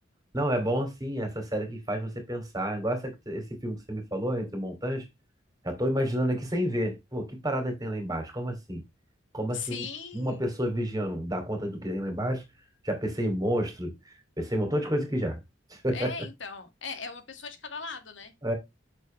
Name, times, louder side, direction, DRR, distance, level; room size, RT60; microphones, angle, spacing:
voice 1, 0.3-5.1 5.6-8.8 9.3-9.8 10.1-12.4 12.8-15.4 15.7-16.1 18.4-18.5, equal, 20° right, 2.8 m, -30 dB
voice 2, 9.5-10.5 15.9-18.3, left 5 dB, 75° left, 2.0 m, -39 dB
8.3 x 6.5 x 3.3 m
head